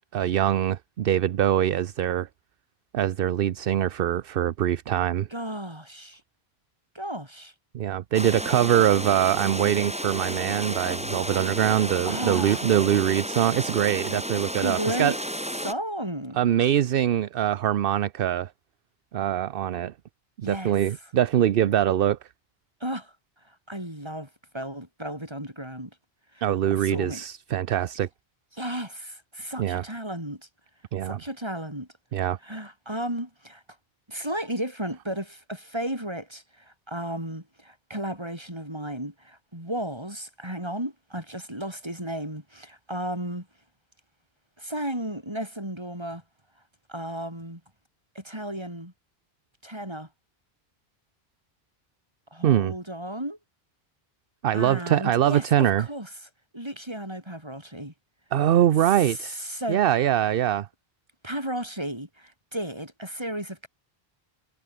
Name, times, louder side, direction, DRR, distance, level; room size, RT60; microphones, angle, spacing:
voice 1, 0.1-2.3 2.9-5.3 7.7-15.1 16.4-18.5 19.1-19.9 20.4-22.2 26.4-28.1 29.6-29.8 30.9-31.2 32.1-32.4 52.4-52.7 54.4-55.9 58.3-59.4 59.7-60.7, right 11 dB, 65° right, 0.8 m, -23 dB
voice 2, 5.3-6.2 6.9-7.5 11.7-12.7 14.6-15.2 15.6-16.5 20.4-20.7 22.8-23.1 23.5-24.3 24.5-25.9 26.3-26.4 26.7-27.2 28.5-30.4 31.0-31.9 32.4-33.6 34.1-43.5 44.6-46.2 46.9-47.6 48.1-48.9 49.6-50.1 52.3-53.4 54.5-56.1 56.5-57.9 58.9-59.8 61.2-63.7, right 1 dB, 25° right, 6.6 m, -34 dB
sound 1, 8.1-15.7, equal, 5° right, 4.6 m, -32 dB
omnidirectional pair, 1.1 m